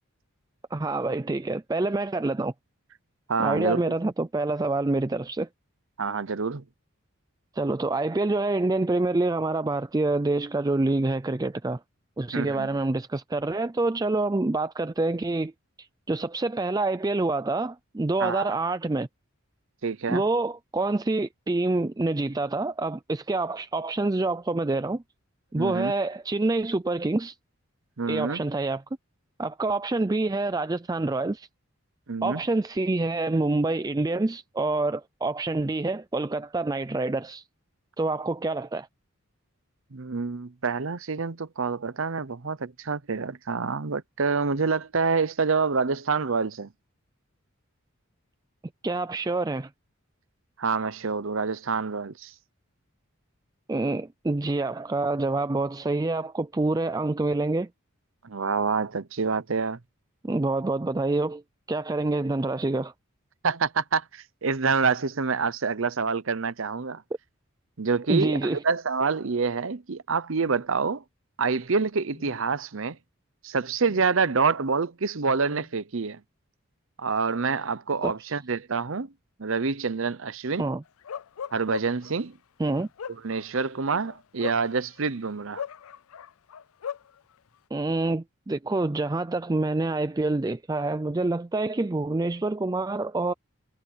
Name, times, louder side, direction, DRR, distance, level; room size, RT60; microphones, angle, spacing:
voice 1, 0.7-2.5 3.4-5.5 7.5-11.8 12.2-15.5 15.8-19.1 20.1-25.0 25.5-27.4 28.1-28.8 29.4-31.5 32.2-37.4 38.0-38.9 48.8-49.7 53.7-57.7 60.2-61.4 61.7-62.9 68.1-68.6 78.0-78.1 80.6-80.8 82.6-82.9 87.7-93.3, right 2 dB, 15° right, 0.4 m, -27 dB
voice 2, 3.3-3.8 6.0-6.6 12.3-12.7 18.2-18.5 19.8-20.2 25.6-25.9 28.0-28.4 32.1-32.4 39.9-46.7 50.6-52.3 58.2-59.8 63.4-67.0 67.8-71.0 71.4-73.0 73.4-76.2 77.0-79.1 79.4-80.7 81.5-82.4 83.2-85.6, right 4 dB, 65° right, 0.8 m, -27 dB
sound 1, 70.4-70.6 72.1-72.4 73.8-74.1 75.5-75.8, left 2 dB, 30° left, 3.2 m, -51 dB
Bark, 81.0-82.1 82.7-85.1 85.6-87.1, left 7 dB, 80° left, 0.5 m, -37 dB
head